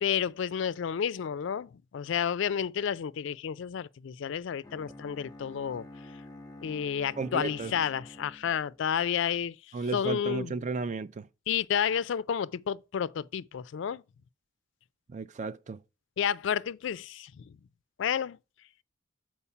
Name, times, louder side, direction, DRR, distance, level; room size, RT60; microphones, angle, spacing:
voice 1, 0.0-5.9 6.6-10.5 11.5-14.0 16.2-17.6 18.0-18.4, left 8 dB, 65° left, 0.3 m, -31 dB
Bowed string instrument, 4.6-8.8, left 2 dB, 20° left, 0.9 m, -48 dB
voice 2, 7.2-7.7 9.7-11.3 15.1-15.8, right 4 dB, 35° right, 0.4 m, -34 dB
7.1 x 4.5 x 5.5 m
head